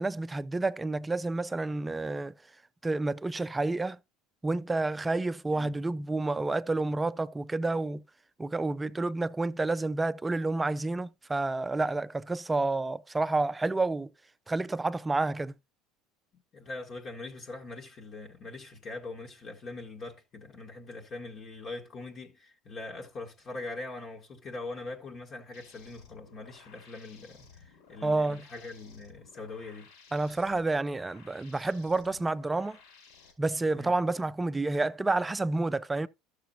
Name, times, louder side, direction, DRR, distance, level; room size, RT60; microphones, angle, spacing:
voice 1, 0.0-2.3 2.8-4.0 4.4-8.0 8.4-14.1 14.5-15.5 28.0-28.4 30.1-32.8 33.4-36.1, right 2 dB, 15° right, 0.4 m, -29 dB
voice 2, 16.5-29.9 33.8-34.0, left 3 dB, 40° left, 1.5 m, -42 dB
sound 1, 25.5-33.3, left 5 dB, 75° left, 4.0 m, -56 dB
12.5 x 6.8 x 2.7 m
supercardioid pair, 95°, 0 cm